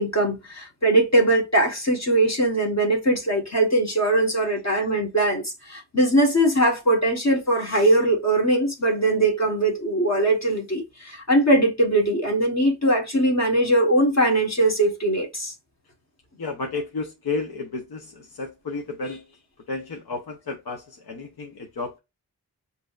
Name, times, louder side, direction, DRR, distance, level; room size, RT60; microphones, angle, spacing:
voice 1, 0.0-15.5, right 1 dB, 45° left, 1.3 m, -21 dB
voice 2, 16.4-19.4 19.7-22.0, left 3 dB, 70° left, 0.9 m, -32 dB
7.2 x 2.7 x 2.4 m
wide cardioid pair, 80°, 38 cm